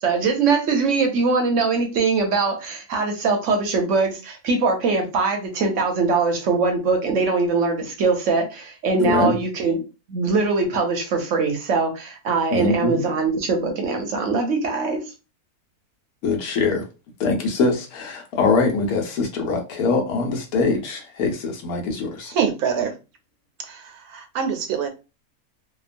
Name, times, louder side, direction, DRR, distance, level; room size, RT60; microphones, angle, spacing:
voice 1, 0.0-9.8 10.1-15.0, right 4 dB, 65° right, 0.9 m, -22 dB
voice 2, 9.0-9.4 12.5-13.0 16.2-16.8 17.2-22.3, left 4 dB, 75° left, 1.2 m, -23 dB
voice 3, 22.3-22.9 23.6-24.9, right 7 dB, 85° right, 1.1 m, -25 dB
2.9 x 2.2 x 2.5 m
omnidirectional pair, 1.6 m